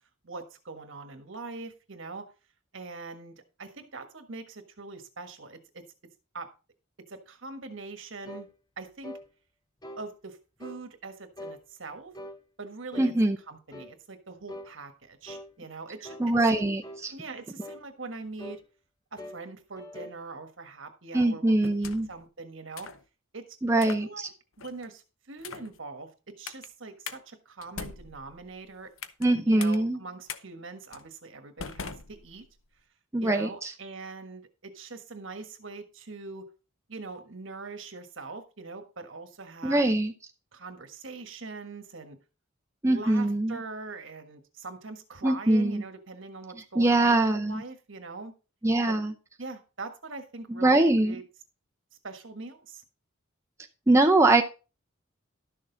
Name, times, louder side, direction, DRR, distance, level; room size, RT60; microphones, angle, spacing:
voice 1, 0.2-2.3 2.7-5.8 6.3-6.5 7.1-8.5 8.8-9.2 10.0-12.1 12.6-13.1 13.5-16.3 17.1-18.6 19.1-22.9 23.3-23.5 23.8-24.3 24.6-28.9 29.4-32.5 33.2-36.5 36.9-39.9 40.5-42.2 42.9-48.3 48.9-49.0 49.4-51.2 52.0-52.8, right 3 dB, 65° right, 7 dB, 1.4 m, -42 dB
sound 1, 8.2-8.5 9.0-9.3 9.8-10.1 10.6-10.8 11.4-11.6 12.1-12.4 12.9-13.2 13.7-13.9 14.5-14.7 15.2-15.5 16.0-16.3 16.8-17.1 17.6-17.8 18.4-18.6 19.2-19.4 19.8-20.2, left 1 dB, 20° left, 0.9 m, -43 dB
voice 2, 13.0-13.4 16.2-17.1 21.1-22.1 23.6-24.3 29.2-30.0 33.1-33.7 39.6-40.1 42.8-43.6 45.2-45.8 46.8-47.6 48.6-49.1 50.5-51.2 53.9-54.4, right 2 dB, 15° right, 3 dB, 0.6 m, -23 dB
sound 2, 21.6-22.2 22.8-23.0 23.7-24.1 24.6-24.9 25.4-25.8 26.5-26.7 27.1-27.2 27.6-29.3 29.6-29.8 30.3-30.4 30.9-31.1 31.6-32.7, left 6 dB, 80° left, 0.8 m, -41 dB
12.0 x 6.6 x 3.9 m, 0.33 s
head